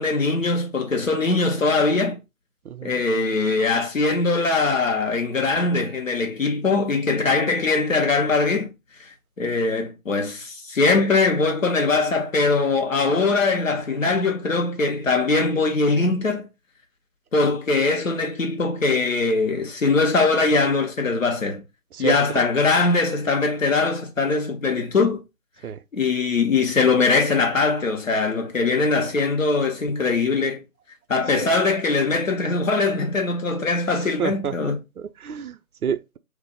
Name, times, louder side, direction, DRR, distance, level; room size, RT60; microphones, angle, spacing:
voice 1, 0.0-2.2 2.8-8.7 9.4-16.5 17.3-21.6 22.0-25.2 25.9-30.6 31.1-34.8, left 3 dB, 65° left, 1.0 m, -21 dB
voice 2, 2.7-3.0 21.9-22.4 25.6-25.8 31.3-31.5 34.2-34.5 35.0-36.2, right 7 dB, 80° right, 0.5 m, -29 dB
2.5 x 2.0 x 3.7 m
figure-of-eight pair, 160°, 43 cm